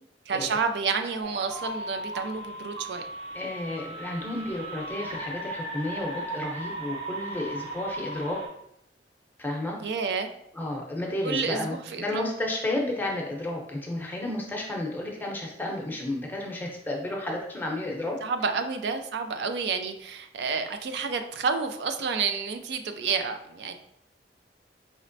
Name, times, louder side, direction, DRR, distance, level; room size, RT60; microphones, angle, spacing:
voice 1, 0.3-3.0 9.8-10.3 11.2-12.2 18.2-23.7, right 5 dB, 70° right, 7 dB, 0.4 m, -29 dB
sound 1, 1.2-8.5, right 1 dB, 30° right, 0.9 m, -37 dB
voice 2, 3.3-8.4 9.4-9.8 10.5-18.2, left 1 dB, 10° left, -1 dB, 0.7 m, -32 dB
5.1 x 3.1 x 2.6 m, 0.75 s
head